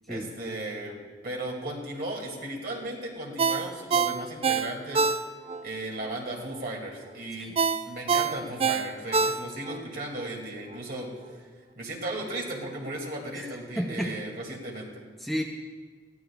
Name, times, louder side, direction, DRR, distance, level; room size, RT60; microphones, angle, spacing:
voice 1, 0.1-1.0 1.2-5.1 5.6-7.5 7.9-11.4 11.8-15.0, right 1 dB, 55° right, 0 dB, 2.5 m, -36 dB
Ringtone, 3.4-5.6 6.0-6.1 7.6-9.8 10.2-10.3, right 5 dB, 30° right, 0.4 m, -25 dB
voice 2, 13.7-14.2 15.2-15.4, equal, ahead, 0 dB, 0.7 m, -31 dB
22.0 x 15.5 x 2.4 m, 1.5 s
head